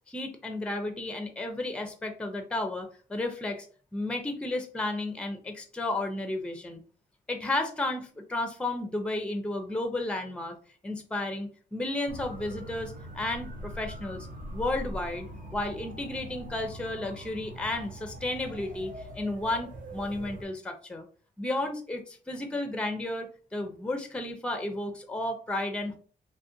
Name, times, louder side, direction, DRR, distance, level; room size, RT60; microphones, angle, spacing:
voice 1, 0.1-3.7 3.9-6.8 7.3-10.6 10.8-14.3 14.5-21.1 21.4-26.0, left 2 dB, 5° left, 6 dB, 0.4 m, -33 dB
sound 1, 12.1-20.5, right 1 dB, 50° right, 0.6 m, -42 dB
2.5 x 2.1 x 2.5 m, 0.41 s
cardioid pair, 75°, 17 cm